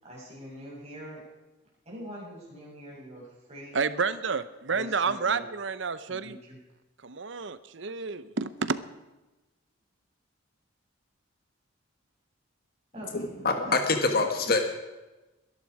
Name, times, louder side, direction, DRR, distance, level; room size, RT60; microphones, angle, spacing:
voice 1, 0.0-1.2 1.8-3.8 4.7-5.4 6.1-6.6 12.9-13.2 13.5-14.0, right 1 dB, 30° right, 7.5 m, -43 dB
voice 2, 3.7-6.4 7.0-8.8, right 5 dB, 65° right, 0.8 m, -30 dB
voice 3, 13.1-14.6, left 3 dB, 50° left, 1.5 m, -25 dB
21.5 x 11.5 x 4.9 m
head